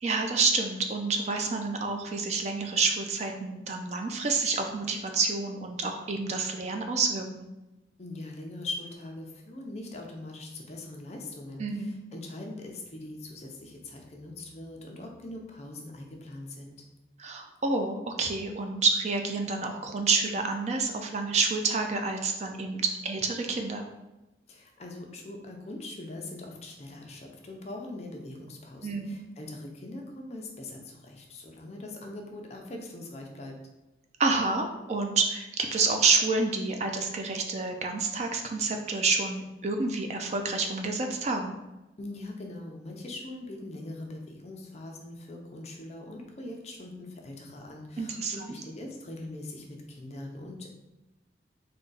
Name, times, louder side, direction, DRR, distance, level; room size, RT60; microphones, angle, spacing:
voice 1, 0.0-7.5 11.6-11.9 17.2-23.9 28.8-29.2 34.2-41.5 48.0-48.5, right 3 dB, 35° right, 4 dB, 0.3 m, -28 dB
voice 2, 8.0-16.8 24.5-33.6 42.0-50.7, left 2 dB, 35° left, 1 dB, 0.5 m, -41 dB
3.7 x 2.2 x 3.9 m, 1.0 s
head